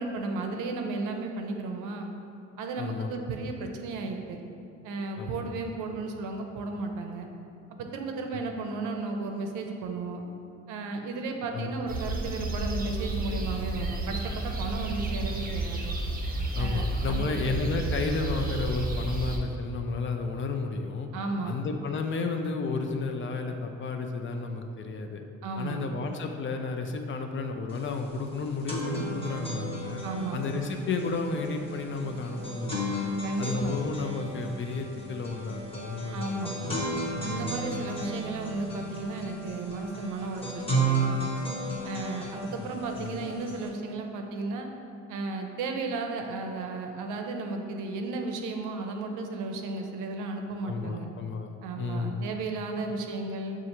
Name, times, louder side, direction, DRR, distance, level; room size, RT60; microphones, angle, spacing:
voice 1, 0.0-2.1 2.6-4.4 4.8-7.3 7.7-10.3 10.7-16.0 16.6-17.4 21.1-21.6 25.4-25.9 30.0-30.4 33.2-33.8 36.1-36.6 37.2-41.3 41.8-44.7 45.1-51.1 51.6-53.6, right 3 dB, 85° right, 4 dB, 0.5 m, -34 dB
voice 2, 2.8-3.2 5.2-5.5 8.7-8.8 11.5-11.8 16.5-21.1 21.4-25.2 25.6-30.0 30.3-32.9 33.4-36.5 36.8-37.5 42.6-42.7 43.0-43.3 50.6-52.2, left 4 dB, 40° left, 5 dB, 0.4 m, -32 dB
sound 1, 11.9-19.4, right 2 dB, 30° right, 0.5 m, -31 dB
sound 2, 27.7-27.8 28.1-43.7, right 1 dB, 20° left, 1.0 m, -34 dB
6.4 x 2.4 x 2.9 m, 2.6 s
cardioid pair, 90°, 30 cm